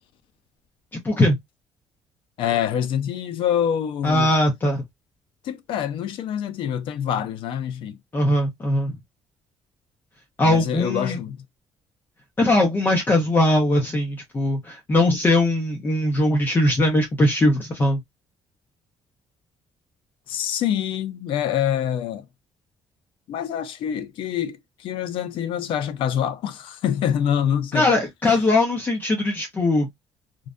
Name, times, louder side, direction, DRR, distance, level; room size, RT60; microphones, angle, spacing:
voice 1, 0.9-1.4 4.0-4.8 8.1-9.0 10.4-11.2 12.4-18.0 27.7-29.9, left 1 dB, 20° left, 0.6 m, -20 dB
voice 2, 2.4-4.3 5.4-8.0 10.4-11.4 20.3-22.3 23.3-27.9 28.2-28.4, left 9 dB, 65° left, 0.4 m, -26 dB
2.5 x 2.1 x 2.3 m
cardioid pair, 165°, 9 cm